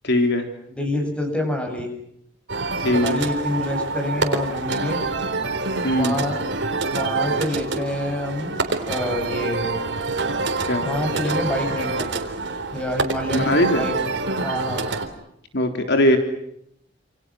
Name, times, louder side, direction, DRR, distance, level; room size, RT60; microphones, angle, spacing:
voice 1, 0.0-0.5 2.8-3.2 5.8-6.2 10.7-10.8 13.3-13.8 15.5-16.2, left 1 dB, 60° left, 5 dB, 3.6 m, -20 dB
voice 2, 0.7-1.9 2.8-5.0 5.9-6.4 6.9-8.6 8.9-9.7 10.8-12.1 12.7-13.9 14.4-15.0, left 1 dB, 5° left, 3 dB, 8.0 m, -27 dB
sound 1, 2.5-15.1, right 3 dB, 65° right, 3.8 m, -26 dB
29.0 x 28.0 x 6.4 m, 0.75 s
head